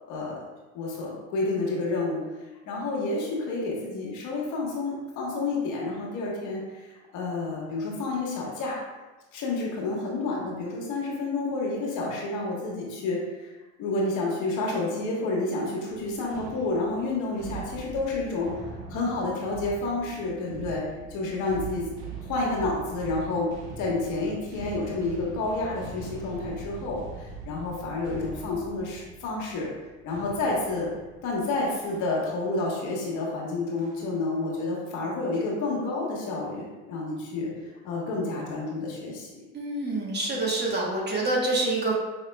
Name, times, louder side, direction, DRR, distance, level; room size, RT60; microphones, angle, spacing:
voice 1, 0.1-0.4 0.7-2.2 2.6-8.8 9.3-13.5 13.8-18.5 18.9-20.8 21.1-21.9 22.3-23.5 23.8-29.7 30.0-30.9 31.2-39.3, left 2 dB, 55° left, -3 dB, 1.4 m, -29 dB
sound 1, 15.9-32.4 32.9-33.2 33.8-34.3, right 4 dB, 60° right, 1.1 m, -42 dB
voice 2, 39.5-41.9, right 2 dB, 30° right, -2 dB, 1.1 m, -26 dB
5.4 x 3.5 x 2.2 m, 1.1 s
supercardioid pair, 100°, 35 cm